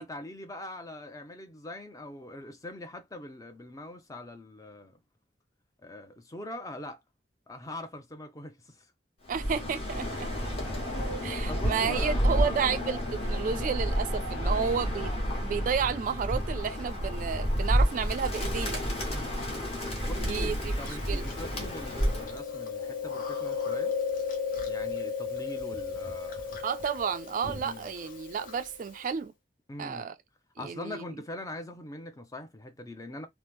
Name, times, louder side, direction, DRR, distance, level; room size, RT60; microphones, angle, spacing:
voice 1, 0.0-5.0 5.8-7.0 7.5-8.9 11.5-12.7 14.4-14.9 19.1-19.5 20.0-24.0 24.7-26.7 27.6-27.9 29.7-30.1 30.6-33.3, left 1 dB, 20° left, 0.5 m, -42 dB
Bird, 9.3-22.4, equal, 35° left, 1.1 m, -30 dB
voice 2, 9.3-10.5 11.2-15.1 15.4-18.8 20.2-21.2 26.6-29.3 29.8-30.1 30.6-31.0, right 6 dB, 45° right, 0.3 m, -31 dB
sound 1, 9.9-16.2, equal, 85° left, 0.7 m, -43 dB
Chewing mastication, 20.1-29.1, left 6 dB, 50° left, 0.8 m, -35 dB
3.0 x 2.0 x 3.4 m
head